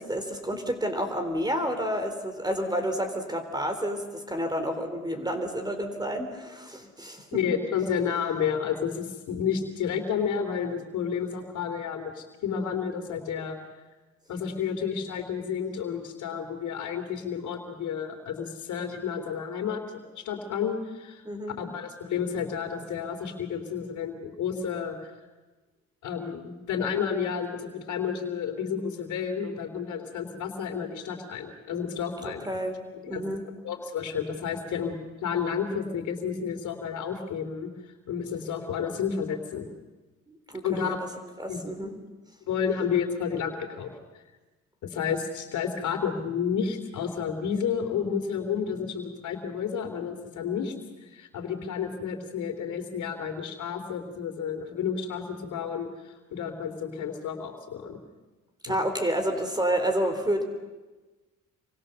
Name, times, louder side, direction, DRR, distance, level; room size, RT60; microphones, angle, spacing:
voice 1, 0.0-7.4 21.3-21.6 32.2-32.8 33.1-33.5 40.3-41.1 41.4-41.9 58.6-60.4, equal, 15° right, 7 dB, 3.7 m, -30 dB
voice 2, 7.3-13.6 14.3-19.8 20.1-21.2 21.6-25.1 26.0-32.5 33.0-33.2 33.6-34.9 35.2-37.7 38.1-39.7 40.6-41.0 41.5-42.0 42.5-44.2 44.8-50.7 51.0-58.0 58.6-58.8, left 7 dB, 75° left, 3 dB, 3.3 m, -31 dB
28.0 x 24.0 x 6.8 m, 1.2 s
cardioid pair, 90°, 30 cm